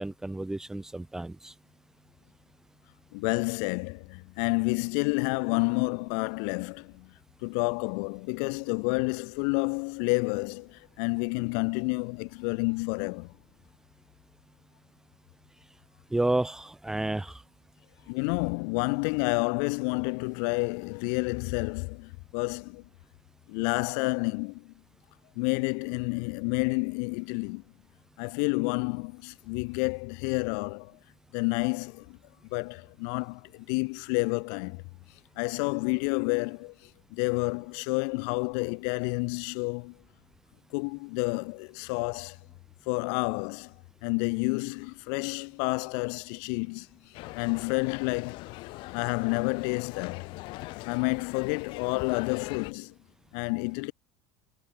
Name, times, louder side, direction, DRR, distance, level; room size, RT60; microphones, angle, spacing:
voice 1, 0.0-1.5 16.1-17.4, right 2 dB, 5° right, 1.6 m, -31 dB
voice 2, 3.1-7.1 7.4-13.3 18.1-22.8 23.5-24.7 25.3-27.6 28.2-31.0 31.3-32.2 32.5-34.8 35.4-40.0 40.7-42.4 42.9-43.7 44.0-48.5 48.9-50.3 50.8-52.9 53.3-53.9, left 40 dB or more, 65° left, 5.0 m, -30 dB
sound 1, 47.1-52.7, left 22 dB, 50° left, 3.0 m, -41 dB
cardioid pair, 175°, 11 cm